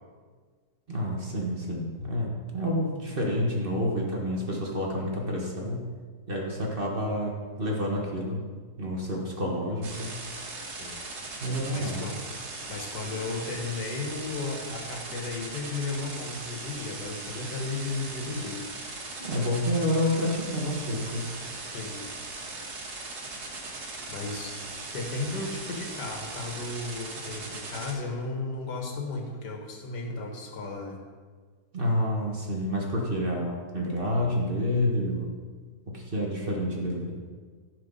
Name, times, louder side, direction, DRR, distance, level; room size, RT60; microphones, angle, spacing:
voice 1, 0.9-5.8 6.3-8.4 8.8-10.1 11.4-12.0 19.2-21.3 31.7-35.3 35.9-37.1, left 1 dB, 35° right, -1 dB, 1.3 m, -29 dB
sound 1, 9.8-27.9, right 3 dB, 70° right, 1.9 m, -39 dB
voice 2, 10.7-11.0 11.7-12.2 12.7-18.9 21.7-22.0 24.1-24.6 24.9-31.0, left 3 dB, 85° left, 1 dB, 2.0 m, -35 dB
11.5 x 4.7 x 5.5 m, 1.5 s
omnidirectional pair, 1.8 m